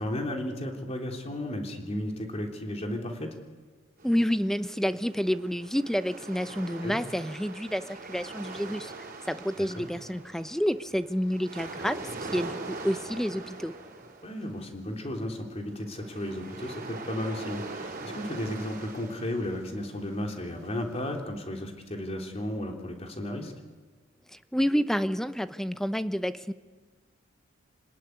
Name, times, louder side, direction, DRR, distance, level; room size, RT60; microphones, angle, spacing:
voice 1, 0.0-3.3 6.8-7.0 9.6-9.8 14.2-23.5, left 1 dB, 35° left, 2 dB, 3.4 m, -34 dB
voice 2, 4.0-13.7 24.3-26.5, equal, ahead, 11 dB, 0.7 m, -29 dB
sound 1, 4.0-21.2, right 3 dB, 45° right, 4.3 m, -43 dB
27.0 x 19.5 x 9.6 m, 1.4 s
head